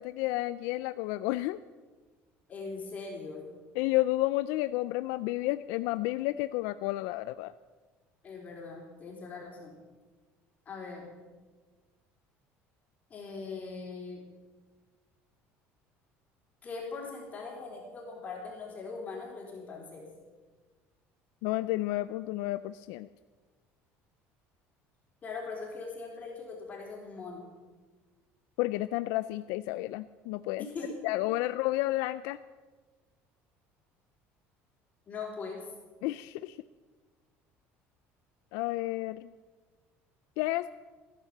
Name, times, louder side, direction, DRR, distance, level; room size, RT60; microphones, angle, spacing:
voice 1, 0.0-1.6 3.8-7.5 21.4-23.1 28.6-30.7 31.0-32.4 36.0-36.6 38.5-39.3 40.4-40.7, left 17 dB, 85° left, 13 dB, 0.4 m, -31 dB
voice 2, 2.5-3.5 8.2-9.8 10.7-11.1 13.1-14.3 16.6-20.1 25.2-27.5 30.6-30.9 35.1-35.7, left 4 dB, 30° left, -2 dB, 3.9 m, -41 dB
16.5 x 10.5 x 7.4 m, 1.4 s
cardioid pair, 150°, 5 cm